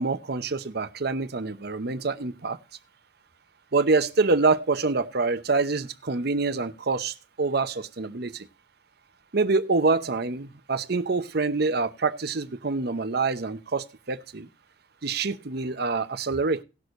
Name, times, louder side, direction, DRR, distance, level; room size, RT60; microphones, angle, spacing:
voice 1, 0.0-2.6 3.7-8.5 9.3-14.5 15.0-16.6, right 3 dB, 60° right, 0.8 m, -26 dB
18.5 x 6.3 x 2.5 m
head